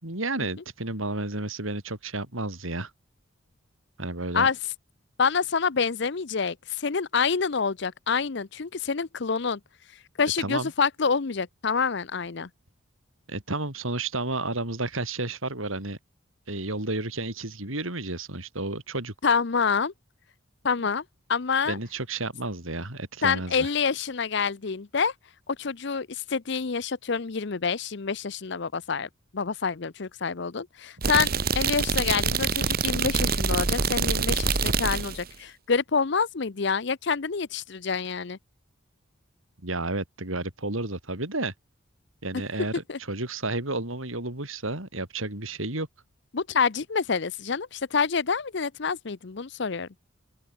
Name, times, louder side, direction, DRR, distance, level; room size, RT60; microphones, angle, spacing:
voice 1, 0.0-2.9 4.0-4.5 10.4-10.7 13.3-16.0 16.5-19.1 21.7-23.7 39.6-41.5 42.2-42.7 43.1-45.9, right 2 dB, 80° right, 5.2 m, -31 dB
voice 2, 5.2-9.6 10.2-12.5 19.2-19.9 20.6-21.0 21.3-21.8 23.2-25.1 25.5-38.4 42.9-43.0 46.3-49.9, left 5 dB, 60° left, 0.7 m, -27 dB
sound 1, 31.0-35.2, right 5 dB, 45° right, 1.4 m, -25 dB
open air
head